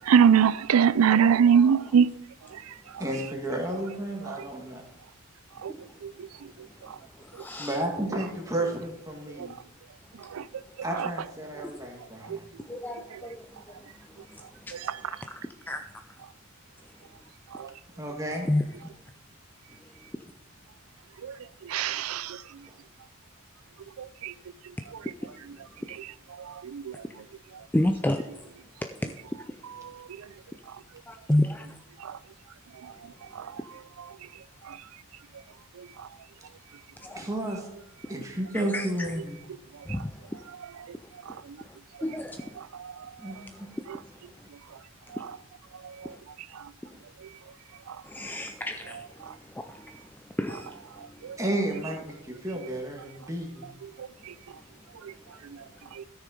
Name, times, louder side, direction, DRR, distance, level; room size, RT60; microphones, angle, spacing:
voice 1, 0.1-2.1 5.6-5.7 10.4-10.5 12.3-12.4 21.7-22.4 24.2-24.3 26.7-26.8, right 7 dB, 85° right, 0.4 m, -20 dB
voice 2, 1.1-2.0 5.7-5.9 7.2-7.8 12.6-13.5 14.1-14.8 15.1-15.4 15.7-15.8 18.5-18.6 25.9-26.0 27.7-28.3 28.8-29.2 31.1-31.8 37.0-37.2 38.5-39.1 39.9-40.4 41.3-41.8 42.0-42.5 43.5-43.7 46.0-46.2 46.8-47.0 48.0-49.9 50.4-51.2, left 1 dB, 10° left, 0.3 m, -31 dB
voice 3, 3.0-4.8 7.6-9.5 10.8-12.4 18.0-18.5 22.7-22.8 37.2-37.7 38.1-39.4 43.2-43.5 51.4-53.7, right 1 dB, 15° right, 2.0 m, -32 dB
13.0 x 6.4 x 5.0 m
head